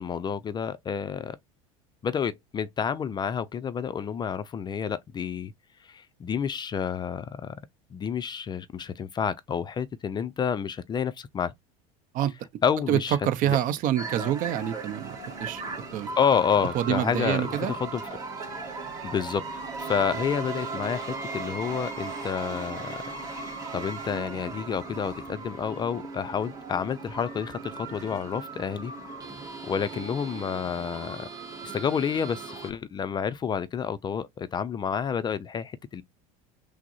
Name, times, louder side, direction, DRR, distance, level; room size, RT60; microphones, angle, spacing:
voice 1, 0.0-1.4 2.0-5.5 5.9-7.5 7.9-11.5 12.6-13.2 13.4-13.6 16.2-18.0 19.0-22.9 23.7-28.9 29.6-31.3 31.6-36.0, left 7 dB, 25° left, 0.3 m, -29 dB
voice 2, 12.9-15.1 15.4-15.6 15.9-16.1 16.7-17.7, right 11 dB, 50° right, 0.6 m, -26 dB
sound 1, 14.0-32.7, right 3 dB, 20° right, 1.8 m, -37 dB
5.9 x 2.0 x 2.6 m
hypercardioid pair, 95°, 18 cm